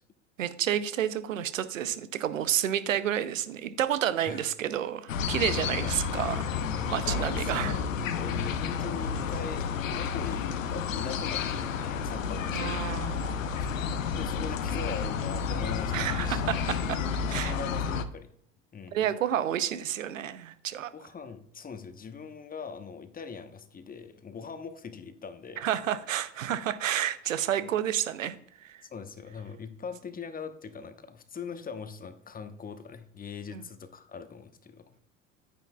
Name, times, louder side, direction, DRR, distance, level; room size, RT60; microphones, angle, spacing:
voice 1, 0.4-6.5 6.9-7.8 12.5-13.4 15.9-17.0 17.3-17.6 18.9-20.9 25.6-28.8 33.5-33.6, right 10 dB, 80° right, 14 dB, 0.7 m, -30 dB
sound 1, 5.1-18.0, left 6 dB, 75° left, 0.8 m, -31 dB
voice 2, 5.6-5.9 7.2-13.1 13.6-16.4 17.5-18.3 18.7-19.1 20.9-25.7 27.6-27.7 28.9-34.9, left 5 dB, 20° left, 9 dB, 1.0 m, -41 dB
10.0 x 9.8 x 2.3 m, 0.69 s
figure-of-eight pair, 70°, 39 cm